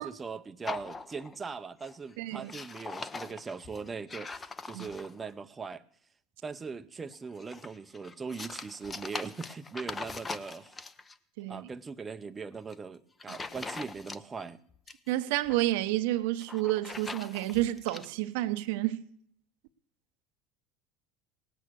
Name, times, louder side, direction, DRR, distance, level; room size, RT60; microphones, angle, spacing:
voice 1, 0.0-5.8 6.4-10.8 11.5-14.6, right 5 dB, 20° right, 0.6 m, -40 dB
sound 1, 0.6-1.5 1.8-2.1 2.4-5.3 7.1-11.2 12.5-12.8 13.2-14.5 14.7-15.7 16.3-18.1, left 4 dB, 20° left, 0.7 m, -42 dB
voice 2, 2.2-2.5 4.7-4.9 11.4-11.7 15.1-19.0, right 16 dB, 75° right, 0.7 m, -30 dB
18.5 x 8.4 x 6.3 m
supercardioid pair, 100°, 0 cm